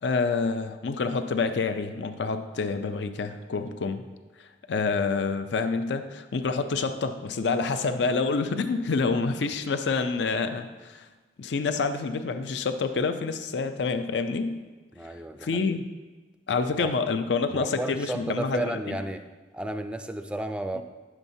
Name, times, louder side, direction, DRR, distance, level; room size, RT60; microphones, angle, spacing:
voice 1, 0.0-4.0 4.4-11.1 11.4-14.6 15.4-15.9 16.5-19.0 20.8-20.9, left 4 dB, 70° left, 9 dB, 0.5 m, -27 dB
voice 2, 14.9-15.7 16.7-16.9 17.5-19.2 19.5-20.8, right 1 dB, 5° right, 7 dB, 0.3 m, -33 dB
9.9 x 7.1 x 2.7 m, 1.3 s
head